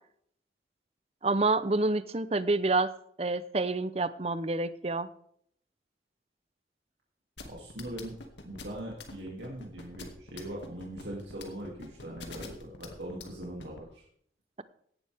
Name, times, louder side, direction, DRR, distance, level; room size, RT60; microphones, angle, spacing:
voice 1, 1.2-2.9 3.2-5.1, right 3 dB, 35° right, 14 dB, 0.7 m, -28 dB
sound 1, 7.4-13.8, left 3 dB, 75° left, 2.3 m, -45 dB
voice 2, 7.5-8.1 8.4-14.0, right 1 dB, 75° right, -3 dB, 2.8 m, -41 dB
17.0 x 11.0 x 3.6 m, 0.65 s
head